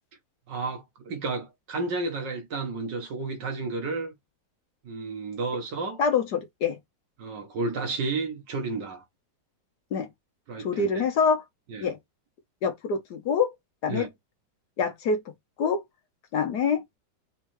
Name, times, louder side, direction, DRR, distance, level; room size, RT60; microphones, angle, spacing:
voice 1, 0.5-4.2 4.8-6.0 7.2-9.0 10.5-10.9 11.7-11.9 13.9-14.1, right 3 dB, 65° right, 1.9 m, -32 dB
voice 2, 6.0-6.8 9.9-10.1 10.6-11.4 11.8-12.0 12.6-13.5 13.8-14.1 14.8-15.2 15.6-15.8 16.3-16.8, left 5 dB, 65° left, 1.2 m, -25 dB
4.2 x 3.3 x 3.1 m
omnidirectional pair, 2.1 m